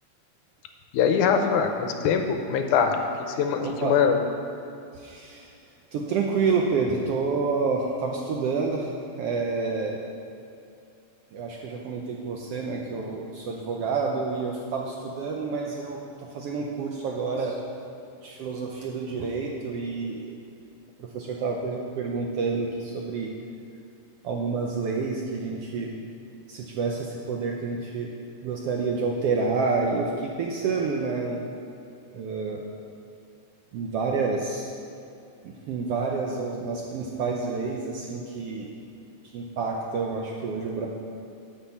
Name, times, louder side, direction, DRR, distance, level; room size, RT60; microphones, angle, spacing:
voice 1, 0.9-3.0 3.3-4.2, left 6 dB, 90° left, 5 dB, 2.2 m, -23 dB
voice 2, 3.6-4.0 4.9-5.5 5.9-10.0 11.3-17.6 18.2-20.4 21.0-23.3 24.2-25.9 26.5-28.1 28.4-31.4 32.1-32.6 33.7-34.7 35.4-38.7 39.3-40.9, right 4 dB, 75° right, -1 dB, 1.4 m, -29 dB
10.0 x 5.9 x 7.1 m, 2.6 s
omnidirectional pair, 3.5 m